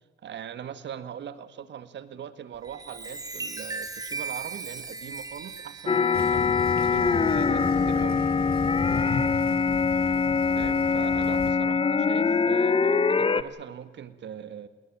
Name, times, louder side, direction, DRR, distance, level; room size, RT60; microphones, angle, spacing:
voice 1, 0.2-8.2 10.6-14.7, right 9 dB, 65° right, 12 dB, 1.9 m, -41 dB
Chime, 2.5-8.5 9.1-9.4, right 4 dB, 20° right, 3.7 m, -39 dB
sound 1, 5.9-13.4, left 5 dB, 25° left, 1.0 m, -23 dB
sound 2, 6.1-11.5, left 4 dB, 50° left, 7.1 m, -35 dB
20.5 x 19.5 x 9.1 m, 1.3 s
cardioid pair, 90°, 20 cm